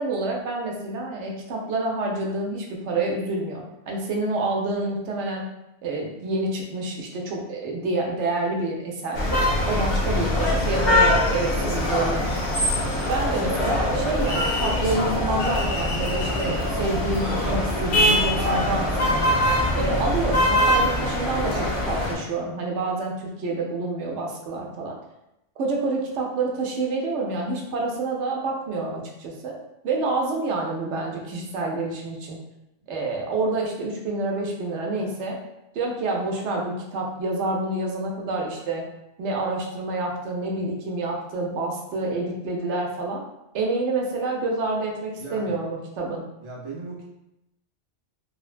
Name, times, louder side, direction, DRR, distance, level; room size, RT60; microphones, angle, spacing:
voice 1, 0.0-5.5 5.8-9.4 9.7-12.4 13.1-19.2 19.7-25.0 25.6-29.6 29.8-32.4 32.9-35.4 35.7-38.9 39.2-43.2 43.5-46.2, right 2 dB, 85° right, -1 dB, 0.9 m, -28 dB
sound 1, 9.1-22.1, left 1 dB, 60° left, 0.9 m, -23 dB
voice 2, 45.2-45.6 46.4-47.0, right 3 dB, 35° right, -4 dB, 0.5 m, -37 dB
3.0 x 2.1 x 2.4 m, 0.87 s
omnidirectional pair, 1.2 m